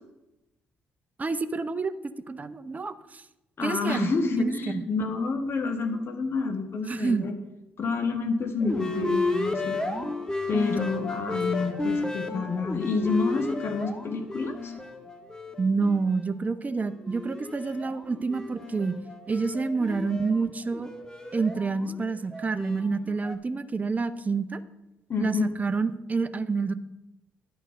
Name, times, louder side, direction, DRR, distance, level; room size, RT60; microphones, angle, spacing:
voice 1, 1.2-1.9 2.3-3.2 3.6-4.8 6.9-7.3 15.6-19.0 19.3-20.9 21.3-24.6 25.2-26.7, right 4 dB, 30° right, 13 dB, 0.7 m, -28 dB
voice 2, 3.6-7.3 7.8-9.8 10.5-14.7 25.1-25.5, left 4 dB, 45° left, 6 dB, 1.4 m, -28 dB
sound 1, 8.6-16.3 16.7-23.3, left 2 dB, 15° left, 1.3 m, -33 dB
10.5 x 4.6 x 7.5 m, 0.96 s
hypercardioid pair, 50°, 5 cm